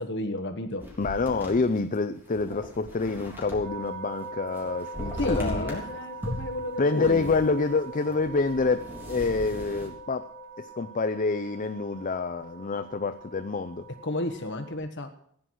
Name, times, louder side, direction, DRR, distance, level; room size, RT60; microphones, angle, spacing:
voice 1, 0.0-0.8 5.2-7.3 14.0-15.1, left 1 dB, 60° left, 6 dB, 1.2 m, -32 dB
sound 1, 0.8-3.9 4.2-5.9 6.2-9.9, equal, 10° right, 3.6 m, -38 dB
voice 2, 1.0-6.0 6.8-10.3 10.6-13.9, left 4 dB, 40° left, 9 dB, 0.6 m, -27 dB
sound 2, 3.6-14.8, right 3 dB, 50° right, 8.0 m, -42 dB
15.5 x 10.0 x 6.3 m, 0.66 s
head